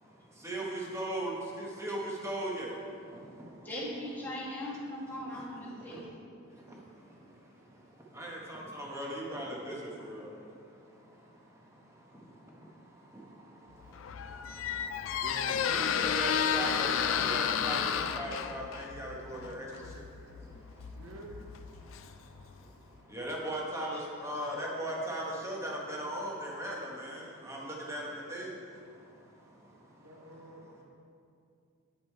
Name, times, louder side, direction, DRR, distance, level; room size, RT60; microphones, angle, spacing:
voice 1, 0.0-3.7 5.1-6.2 6.5-21.1 21.8-30.1, right 1 dB, 15° right, -3 dB, 1.0 m, -40 dB
voice 2, 3.6-6.3 23.8-24.5 27.5-27.6, left 1 dB, 10° left, -6 dB, 1.5 m, -40 dB
Squeak, 13.8-22.6, left 8 dB, 60° left, 0.3 m, -32 dB
voice 3, 15.2-17.3 20.9-21.4 30.0-30.8, right 1 dB, 70° right, 1 dB, 0.9 m, -47 dB
8.9 x 5.2 x 4.4 m, 2.5 s
head